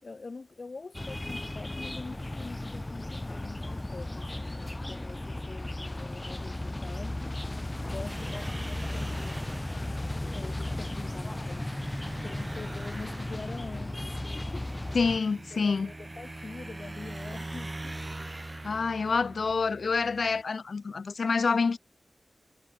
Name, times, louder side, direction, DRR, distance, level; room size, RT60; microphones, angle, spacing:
voice 1, 0.0-7.2 7.9-9.4 10.1-15.0 15.5-18.0, left 3 dB, 55° left, 7.5 m, -45 dB
sound 1, 0.9-15.2, left 1 dB, 20° left, 1.5 m, -35 dB
sound 2, 8.0-20.4, right 2 dB, 25° right, 5.8 m, -43 dB
voice 2, 14.9-15.9 18.6-21.8, left 4 dB, 75° left, 1.4 m, -27 dB
wide cardioid pair, 90°, 0 cm